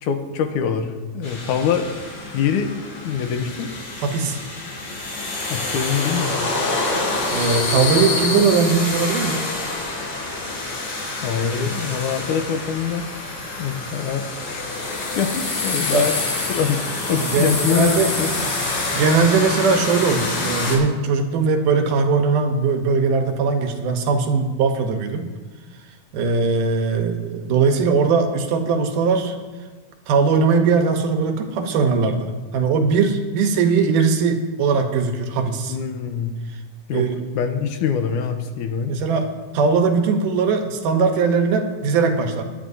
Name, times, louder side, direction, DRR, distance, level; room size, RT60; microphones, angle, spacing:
voice 1, 0.0-1.9 2.3-3.7 5.5-6.4 11.2-13.1 13.6-14.6 14.9-16.1 16.5-18.3 35.7-36.4 36.9-38.9, left 7 dB, 80° left, 7 dB, 2.2 m, -24 dB
sound 1, 1.2-20.8, left 2 dB, 45° left, 3.1 m, -26 dB
voice 2, 4.0-4.4 7.3-9.4 15.9-16.1 17.1-18.1 18.9-25.3 26.1-29.4 30.1-35.8 36.9-37.1 38.9-39.3 39.5-42.4, right 5 dB, 80° right, 5 dB, 2.5 m, -20 dB
20.5 x 10.0 x 2.7 m, 1.3 s
omnidirectional pair, 3.7 m